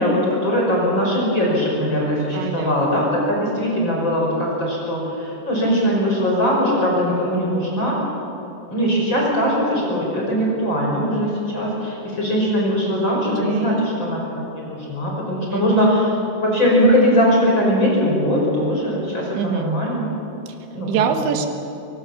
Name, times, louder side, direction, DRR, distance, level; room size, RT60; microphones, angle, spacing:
voice 1, 0.0-8.0 8.7-14.3 14.5-16.1 16.4-20.1 20.7-20.9, equal, 25° left, -3 dB, 6.0 m, -20 dB
voice 2, 2.3-3.0 13.1-13.9 15.5-15.9 19.3-19.7 20.5-20.6 20.9-21.5, right 7 dB, 80° right, 5 dB, 3.6 m, -25 dB
26.0 x 24.0 x 7.2 m, 3.0 s
omnidirectional pair, 5.1 m